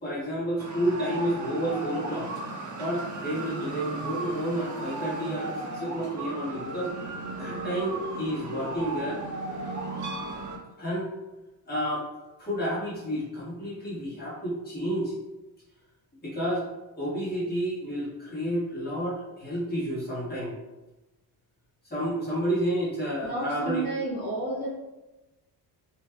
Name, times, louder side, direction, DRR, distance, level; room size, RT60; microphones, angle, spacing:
voice 1, 0.0-2.3 2.8-6.9 7.4-9.2 10.8-11.1 11.6-12.1 12.4-15.1 16.2-16.6 16.9-20.5 21.8-23.8, equal, 25° left, -9 dB, 1.4 m, -30 dB
sound 1, 0.6-10.6, right 2 dB, 45° right, 0.6 m, -36 dB
voice 2, 23.2-24.7, right 2 dB, 15° right, -11 dB, 0.9 m, -31 dB
3.2 x 3.0 x 2.2 m, 1.1 s
cardioid pair, 160°, 42 cm